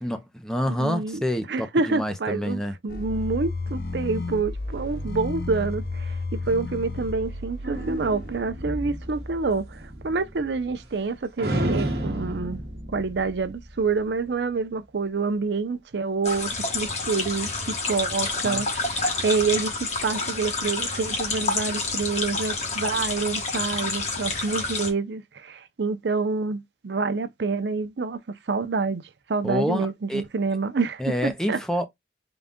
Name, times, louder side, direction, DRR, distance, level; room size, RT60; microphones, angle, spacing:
voice 1, 0.0-2.8 18.4-18.6 29.4-30.2 31.0-31.8, equal, 5° left, 0.5 m, -27 dB
voice 2, 0.7-12.6 12.9-28.2 28.5-29.0 29.3-31.6, right 4 dB, 80° right, 0.6 m, -27 dB
sound 1, 2.9-9.1, left 2 dB, 55° left, 0.7 m, -33 dB
sound 2, 7.6-11.1 11.4-14.1, right 1 dB, 65° right, 1.1 m, -32 dB
sound 3, 16.2-24.9, left 3 dB, 40° left, 1.2 m, -28 dB
3.9 x 2.3 x 3.5 m
head